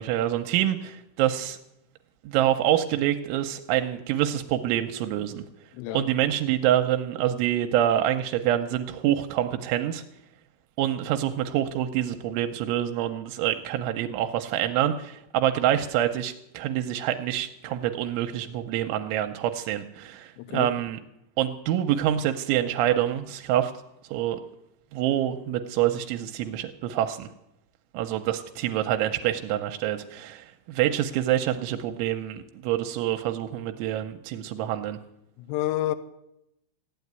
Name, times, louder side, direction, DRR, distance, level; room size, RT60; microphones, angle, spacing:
voice 1, 0.0-1.6 2.2-5.4 5.9-10.0 10.8-21.0 21.4-23.7 24.1-24.4 24.9-27.3 27.9-35.0, right 11 dB, 85° right, 3.1 m, -26 dB
voice 2, 5.7-6.0 20.4-20.7 35.5-36.0, left 14 dB, 80° left, 2.6 m, -28 dB
15.5 x 8.3 x 9.4 m
omnidirectional pair, 5.4 m